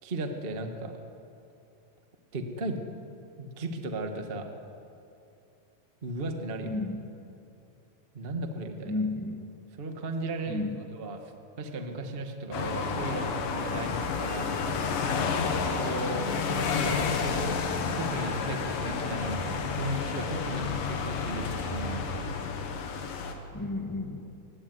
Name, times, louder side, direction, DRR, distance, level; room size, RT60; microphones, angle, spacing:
voice 1, 0.0-1.0 2.3-2.8 3.4-4.5 6.0-6.8 8.1-9.0 9.8-10.6 10.9-11.3 11.6-14.8 15.1-22.3, right 2 dB, 30° right, 5 dB, 1.1 m, -36 dB
voice 2, 6.6-7.0 8.9-9.4 10.5-10.8 23.5-24.2, left 2 dB, 20° left, 2 dB, 0.5 m, -32 dB
sound 1, 12.5-23.3, left 5 dB, 90° left, 3.4 m, -30 dB
24.5 x 19.0 x 9.7 m, 2.7 s
omnidirectional pair, 3.8 m